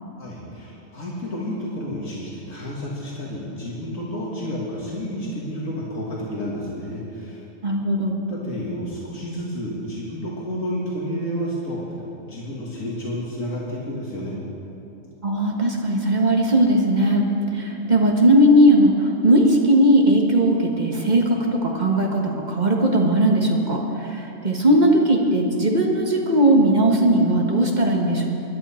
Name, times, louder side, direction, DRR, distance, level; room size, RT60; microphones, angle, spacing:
voice 1, 0.2-7.4 8.3-11.8 12.2-14.4, equal, 85° left, -5 dB, 2.4 m, -30 dB
voice 2, 7.6-8.3 15.2-28.3, right 1 dB, 35° right, 0 dB, 1.5 m, -18 dB
21.5 x 11.5 x 4.4 m, 2.9 s
omnidirectional pair, 1.3 m